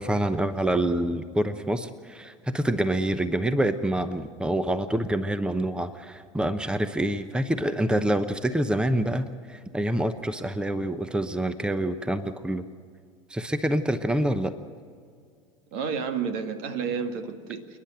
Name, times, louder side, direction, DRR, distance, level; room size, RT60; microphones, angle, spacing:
voice 1, 0.0-12.6 13.3-14.5, right 1 dB, 5° right, 12 dB, 0.9 m, -26 dB
voice 2, 15.7-17.8, right 6 dB, 60° right, 7 dB, 1.9 m, -31 dB
28.5 x 10.5 x 9.1 m, 2.2 s
hypercardioid pair, 80°, 17 cm